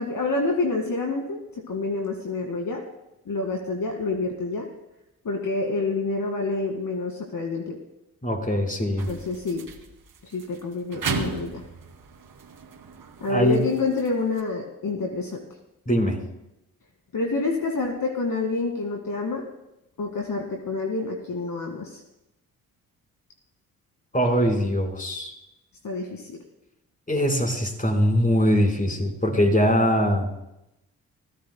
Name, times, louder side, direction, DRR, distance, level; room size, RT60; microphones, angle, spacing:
voice 1, 0.0-1.4 1.7-2.8 3.3-4.7 5.2-7.8 9.1-9.6 10.2-11.6 13.2-15.4 17.1-19.5 20.0-22.0 25.8-26.4, left 3 dB, 55° left, 2 dB, 2.1 m, -27 dB
voice 2, 8.2-9.1 13.3-13.6 15.9-16.2 24.1-25.3 27.1-30.3, equal, 20° left, 2 dB, 4.5 m, -22 dB
sound 1, 9.0-14.4, right 5 dB, 60° right, 2.4 m, -36 dB
22.0 x 15.5 x 2.2 m, 0.87 s
hypercardioid pair, 45°, 41 cm